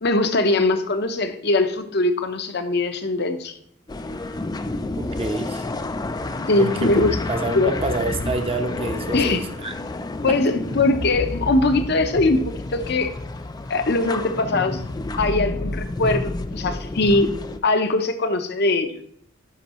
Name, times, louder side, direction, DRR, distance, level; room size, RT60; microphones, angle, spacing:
voice 1, 0.0-3.5 6.5-7.2 7.5-7.7 9.1-9.4 10.2-13.1 13.7-14.8 15.2-17.3 17.6-18.9, left 2 dB, 55° left, 8 dB, 0.8 m, -21 dB
sound 1, 3.9-17.6, left 2 dB, 20° left, 0.4 m, -30 dB
voice 2, 5.0-5.7 6.6-9.7 10.3-10.4, right 2 dB, 30° right, 5 dB, 0.8 m, -28 dB
11.5 x 5.2 x 3.0 m, 0.68 s
head